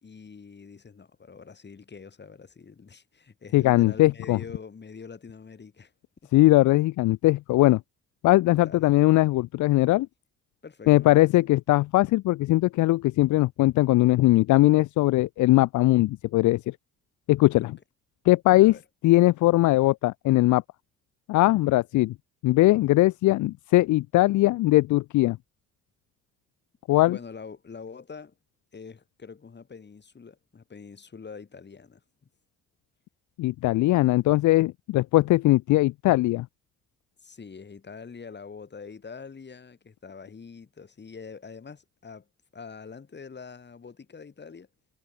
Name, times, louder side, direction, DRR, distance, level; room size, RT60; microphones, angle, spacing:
voice 1, 0.0-5.9 6.2-6.3 8.6-8.9 10.6-11.3 17.6-17.7 18.6-18.8 27.0-28.3 28.7-32.0 37.2-42.3 42.5-44.7, left 5 dB, 35° left, 5.3 m, -44 dB
voice 2, 3.5-4.4 6.3-7.8 8.2-10.1 10.9-16.6 17.3-17.8 18.3-18.7 19.0-20.6 21.3-22.1 22.4-25.4 26.9-27.2 33.4-36.5, left 18 dB, 75° left, 0.5 m, -20 dB
cardioid pair, 90°, 30 cm